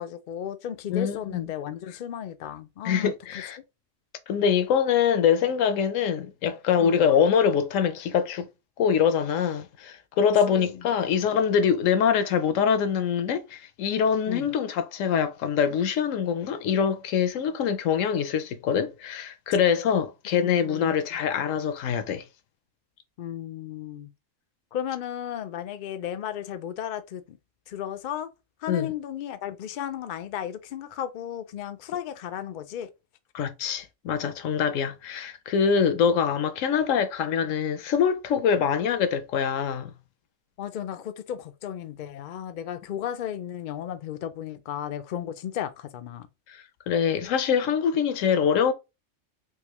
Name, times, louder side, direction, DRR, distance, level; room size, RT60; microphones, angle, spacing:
voice 1, 0.0-3.1 6.8-7.1 10.5-10.8 14.3-14.5 20.4-21.2 23.2-24.1 24.7-27.4 27.7-28.3 28.6-32.9 40.6-46.3, left 10 dB, 65° left, 0.5 m, -34 dB
voice 2, 0.9-1.5 2.8-3.6 4.3-8.5 8.8-22.3 28.7-28.9 33.3-39.9 46.5-48.7, left 7 dB, 80° left, 1.0 m, -24 dB
3.6 x 2.6 x 2.9 m
omnidirectional pair, 1.3 m